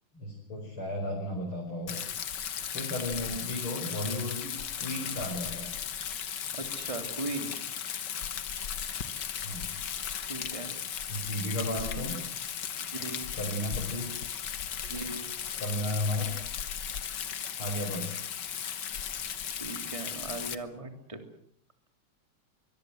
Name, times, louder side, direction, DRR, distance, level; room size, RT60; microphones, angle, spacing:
voice 1, 0.1-2.0 2.7-4.5 4.8-5.7 9.4-9.7 11.1-12.2 13.3-14.1 15.6-16.3 17.6-18.1, left 1 dB, 70° left, -1 dB, 6.3 m, -34 dB
Rain, 1.9-20.6, left 8 dB, 55° left, 1.8 m, -36 dB
voice 2, 6.6-7.5 10.3-10.7 12.8-13.2 14.9-15.2 19.5-21.2, right 2 dB, 15° right, 6 dB, 3.1 m, -38 dB
25.0 x 22.5 x 7.9 m, 0.68 s
omnidirectional pair, 2.4 m